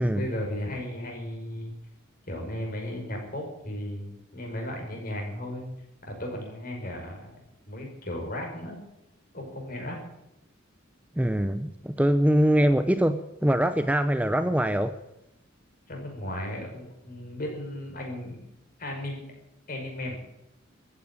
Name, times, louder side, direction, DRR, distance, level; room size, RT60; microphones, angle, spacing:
voice 1, 0.0-1.7 2.3-5.7 6.0-7.4 7.7-8.8 9.3-10.0 15.9-18.4 18.8-19.2 19.7-20.2, left 1 dB, 45° left, 5.6 m, -35 dB
voice 2, 11.2-15.0, equal, 5° right, 0.6 m, -23 dB
14.5 x 9.7 x 10.0 m
head